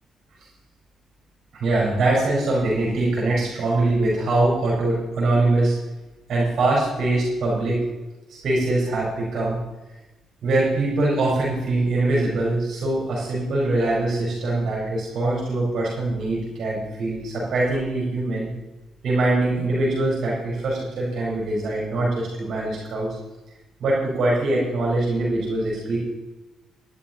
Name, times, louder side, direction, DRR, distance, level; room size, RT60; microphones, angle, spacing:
voice 1, 1.5-5.7 6.3-7.8 8.4-9.6 10.4-18.5 19.0-23.2 23.8-26.0, right 2 dB, 65° right, -4 dB, 5.3 m, -23 dB
13.0 x 11.5 x 4.5 m, 1.1 s
cardioid pair, 90°, 0 cm